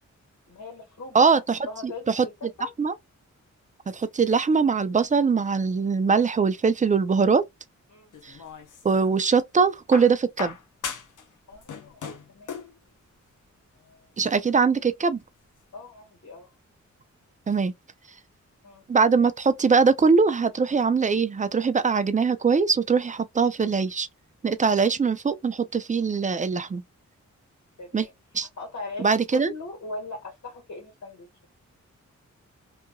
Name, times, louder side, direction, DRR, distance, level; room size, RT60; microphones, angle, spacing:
voice 1, 0.5-1.2 1.7-2.7 7.9-8.2 11.5-12.6 15.7-16.5 18.6-18.8 27.8-28.1 28.6-31.5, left 3 dB, 65° left, 1.4 m, -40 dB
voice 2, 1.1-2.3 2.8-2.9 3.9-7.4 8.2-8.4 8.8-10.5 14.2-15.2 17.5-17.7 18.9-24.1 24.4-26.8 27.9-28.1 28.3-28.5 29.0-29.5, right 5 dB, 25° right, 0.4 m, -22 dB
sound 1, 8.1-9.1 9.9-11.3 11.5-12.8 13.9-14.0, left 6 dB, 90° left, 0.7 m, -37 dB
2.8 x 2.5 x 2.2 m
wide cardioid pair, 90°, 30 cm